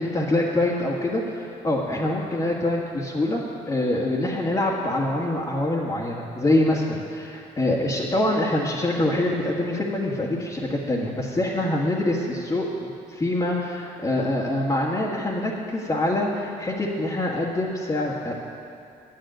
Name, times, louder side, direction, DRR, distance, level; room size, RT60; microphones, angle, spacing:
voice 1, 0.0-18.3, left 1 dB, 25° left, -5 dB, 1.7 m, -25 dB
10.5 x 8.6 x 9.0 m, 2.6 s
cardioid pair, 100°, 15 cm